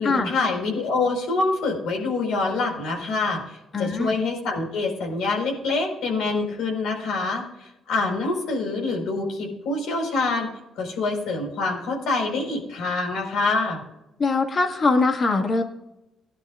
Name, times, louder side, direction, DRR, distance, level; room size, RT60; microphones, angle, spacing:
voice 1, 0.0-10.5 10.8-13.8, left 3 dB, 85° left, 1 dB, 4.7 m, -26 dB
voice 2, 3.7-4.1 14.2-15.6, left 3 dB, 40° left, 4 dB, 1.9 m, -22 dB
18.5 x 11.5 x 2.5 m, 0.90 s
cardioid pair, 90°, 0 cm